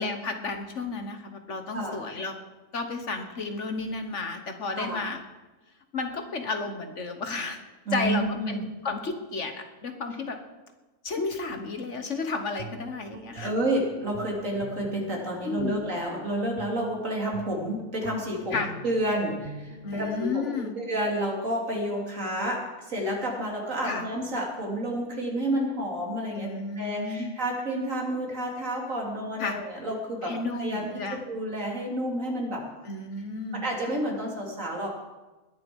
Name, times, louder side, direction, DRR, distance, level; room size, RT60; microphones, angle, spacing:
voice 1, 0.0-2.4 2.7-5.2 5.9-7.6 7.9-10.4 11.0-13.5 15.4-15.9 18.5-18.7 19.8-20.8 23.8-24.0 26.3-27.3 29.4-29.6 30.2-31.2 32.8-33.6, left 3 dB, 55° left, 6 dB, 1.5 m, -32 dB
voice 2, 4.7-5.0 7.9-8.6 13.3-20.5 20.8-26.5 26.8-32.6 33.5-35.0, right 1 dB, 60° right, -1 dB, 3.5 m, -30 dB
Guitar, 12.3-20.3, right 4 dB, 40° right, 1.0 m, -45 dB
20.5 x 10.5 x 5.4 m, 1.2 s
omnidirectional pair, 1.6 m